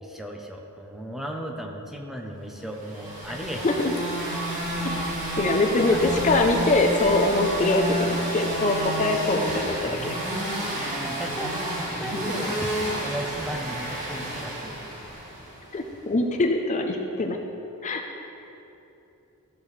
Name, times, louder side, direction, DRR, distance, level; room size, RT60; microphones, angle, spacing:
voice 1, 0.0-3.7 5.9-6.0 11.0-14.8, equal, ahead, 1 dB, 0.7 m, -36 dB
sound 1, 2.8-15.7, right 1 dB, 35° right, 2.3 m, -30 dB
voice 2, 5.4-10.2 12.1-12.2 15.7-17.4 17.8-18.0, left 2 dB, 35° left, 3 dB, 0.6 m, -23 dB
15.0 x 6.9 x 3.2 m, 2.9 s
head